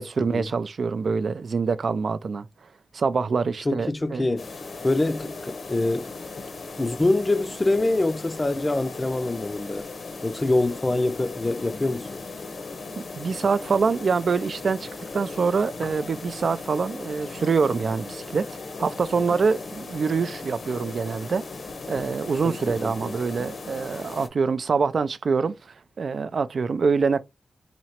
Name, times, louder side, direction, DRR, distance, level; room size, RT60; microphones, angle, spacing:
voice 1, 0.0-2.5 2.9-4.3 13.0-14.9 15.1-18.5 18.8-21.4 21.9-25.6 26.0-27.2, right 5 dB, 60° right, 0.3 m, -25 dB
voice 2, 3.7-4.5 4.8-6.1 6.8-9.9 10.2-12.2 22.4-22.6 22.8-23.1, left 2 dB, 20° left, 0.4 m, -25 dB
sound 1, 4.4-24.3, left 3 dB, 65° left, 0.7 m, -38 dB
2.9 x 2.8 x 4.3 m
wide cardioid pair, 100°, 0 cm